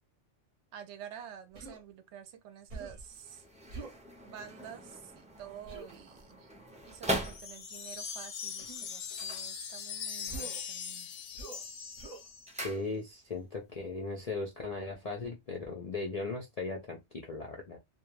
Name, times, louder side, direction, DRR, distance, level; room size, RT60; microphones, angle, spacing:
voice 1, 0.7-3.4 4.2-6.5 6.8-11.3, right 9 dB, 70° right, 0.8 m, -49 dB
Human voice, 1.5-1.8 2.7-3.1 3.7-4.0 5.7-5.9 7.1-7.4 8.6-8.9 10.3-10.7 11.3-11.7 12.0-12.3, right 3 dB, 40° right, 0.7 m, -45 dB
sound 1, 3.0-8.0 9.0-10.2 10.5-11.0 11.3-13.4 13.7-13.8, right 1 dB, 10° right, 0.4 m, -41 dB
Wind chime, 7.2-12.6, left 7 dB, 90° left, 0.9 m, -41 dB
voice 2, 12.6-17.8, left 3 dB, 55° left, 0.4 m, -38 dB
2.3 x 2.2 x 3.0 m
omnidirectional pair, 1.2 m